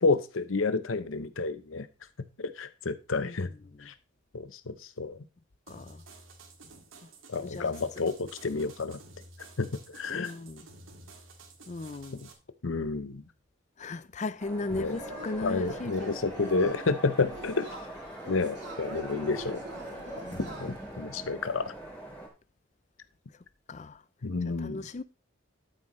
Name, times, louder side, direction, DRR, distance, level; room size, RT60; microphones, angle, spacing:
voice 1, 0.0-1.9 2.4-3.5 3.8-3.9 4.3-5.2 7.3-9.0 9.6-10.3 12.6-13.2 14.8-15.0 15.4-17.8 18.3-19.6 20.6-21.7 24.2-24.8, left 3 dB, 85° left, 0.8 m, -30 dB
voice 2, 3.2-3.9 5.7-6.0 7.4-7.7 10.1-10.7 11.7-12.3 13.8-16.1 20.2-20.6 23.7-24.0 24.6-25.0, left 2 dB, 35° left, 0.5 m, -37 dB
sound 1, 5.7-12.3, right 3 dB, 85° right, 2.2 m, -51 dB
sound 2, 14.4-22.3, right 1 dB, 10° left, 3.7 m, -42 dB
Yell / Cheering, 14.9-21.0, right 2 dB, 60° right, 3.2 m, -44 dB
12.5 x 7.7 x 3.2 m
head